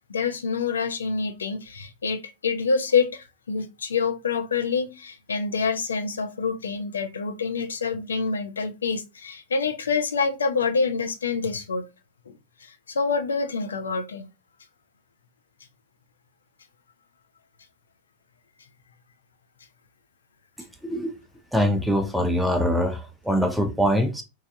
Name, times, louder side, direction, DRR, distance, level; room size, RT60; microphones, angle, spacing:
voice 1, 0.1-11.8 12.3-12.4 12.6-14.3, left 5 dB, 70° left, 0.5 m, -26 dB
voice 2, 20.8-21.1 21.5-24.2, equal, ahead, 0.5 m, -23 dB
3.1 x 2.4 x 2.7 m
figure-of-eight pair, 90°, 0 cm